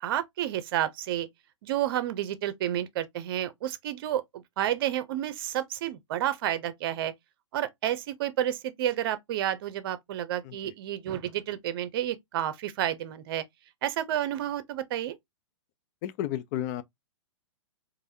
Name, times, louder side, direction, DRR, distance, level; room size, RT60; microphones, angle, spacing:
voice 1, 0.0-1.3 1.6-7.1 7.5-13.4 13.8-15.2, right 11 dB, 45° right, 0.7 m, -30 dB
voice 2, 16.0-16.8, left 12 dB, 35° left, 0.5 m, -32 dB
4.7 x 2.6 x 2.6 m
figure-of-eight pair, 110°, 16 cm